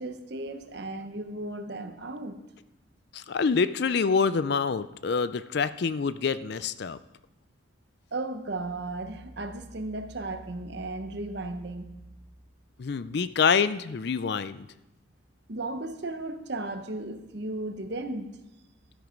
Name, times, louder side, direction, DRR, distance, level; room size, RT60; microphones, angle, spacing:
voice 1, 0.0-2.4 8.1-11.9 15.5-18.4, right 2 dB, 55° right, 8 dB, 1.0 m, -35 dB
voice 2, 3.1-7.0 12.8-14.7, left 5 dB, 55° left, 15 dB, 0.4 m, -26 dB
12.5 x 9.6 x 5.2 m, 0.94 s
head